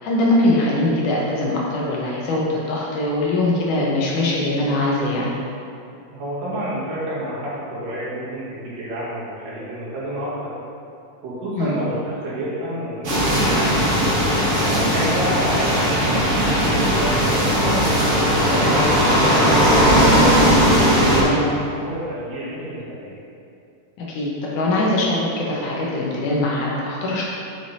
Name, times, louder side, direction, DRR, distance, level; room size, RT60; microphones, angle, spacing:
voice 1, 0.0-5.3 11.6-11.8 21.1-21.5 24.0-27.2, left 1 dB, 70° left, -4 dB, 2.3 m, -22 dB
voice 2, 6.1-10.5 11.2-13.9 14.6-20.3 20.7-21.5 21.7-23.1, equal, 70° right, -9 dB, 3.4 m, -29 dB
sound 1, 13.0-21.2, equal, 50° right, 1.9 m, -17 dB
7.8 x 4.9 x 4.1 m, 2.6 s
omnidirectional pair, 4.0 m